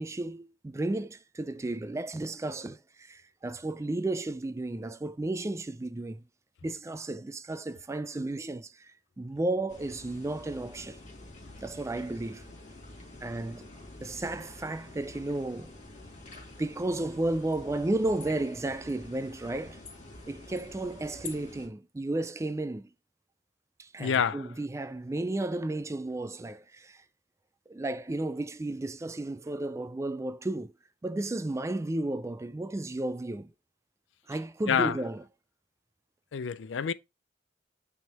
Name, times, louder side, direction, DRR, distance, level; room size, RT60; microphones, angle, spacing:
voice 1, 0.0-6.2 6.6-11.0 11.6-12.5 13.2-13.7 14.0-15.7 16.6-19.8 20.3-22.9 23.8-27.0 27.7-30.7 31.0-33.5 34.3-35.2, right 2 dB, 15° right, 0.3 m, -33 dB
sound 1, 9.7-21.7, left 2 dB, 40° left, 2.2 m, -48 dB
voice 2, 24.0-24.5 34.7-35.0 36.3-36.9, left 7 dB, 75° left, 0.4 m, -27 dB
9.0 x 3.6 x 2.9 m
head